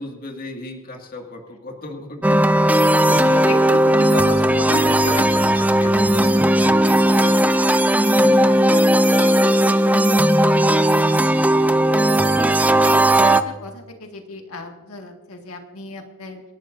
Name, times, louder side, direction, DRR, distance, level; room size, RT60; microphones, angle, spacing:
voice 1, 0.0-4.3 4.8-7.8 8.1-10.7, left 1 dB, 45° left, 2 dB, 2.0 m, -37 dB
sound 1, 2.2-13.4, right 1 dB, 5° right, 0.5 m, -16 dB
voice 2, 2.9-5.3 7.2-7.4 12.4-12.5 13.2-16.4, left 2 dB, 90° left, 3 dB, 1.9 m, -33 dB
27.5 x 12.0 x 2.6 m, 1.2 s
head